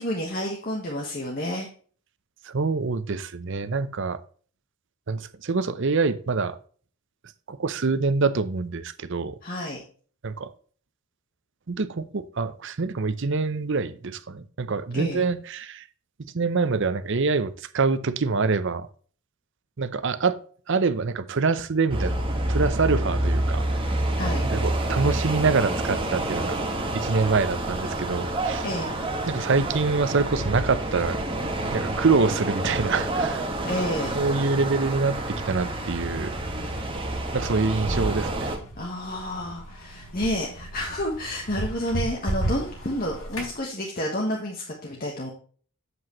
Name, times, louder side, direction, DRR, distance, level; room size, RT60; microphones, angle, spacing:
voice 1, 0.0-1.7 9.4-9.8 14.9-15.2 24.1-24.5 28.6-28.9 33.6-34.2 38.8-45.3, left 1 dB, 40° left, 1.4 m, -30 dB
voice 2, 2.4-4.2 5.1-6.6 7.5-9.4 10.2-10.5 11.7-15.8 16.2-18.9 19.8-20.4 20.7-22.2 22.5-23.6 24.5-26.6 26.9-28.7 29.3-31.2 31.7-33.5 34.1-36.3 37.3-38.5, right 4 dB, 55° right, 0.7 m, -25 dB
sound 1, 21.9-38.6, right 1 dB, 25° right, 1.5 m, -28 dB
sound 2, 37.3-43.6, right 1 dB, 85° left, 4.3 m, -33 dB
7.9 x 7.7 x 3.1 m
head